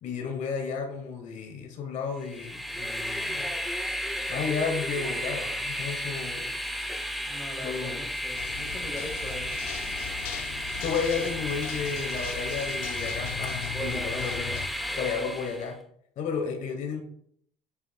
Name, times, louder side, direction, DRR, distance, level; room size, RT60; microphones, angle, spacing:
voice 1, 0.0-3.5 4.3-6.5 7.6-8.0 10.8-14.5 15.0-15.8 16.2-17.0, left 5 dB, 50° left, 4 dB, 1.1 m, -32 dB
Train, 2.2-15.7, equal, ahead, 0.5 m, -33 dB
voice 2, 7.2-9.5 13.7-14.6 14.9-15.4, equal, 15° left, 1 dB, 0.9 m, -40 dB
sound 1, 8.3-14.7, left 10 dB, 80° left, 0.5 m, -39 dB
7.2 x 6.0 x 2.3 m, 0.67 s
cardioid pair, 135°, 16 cm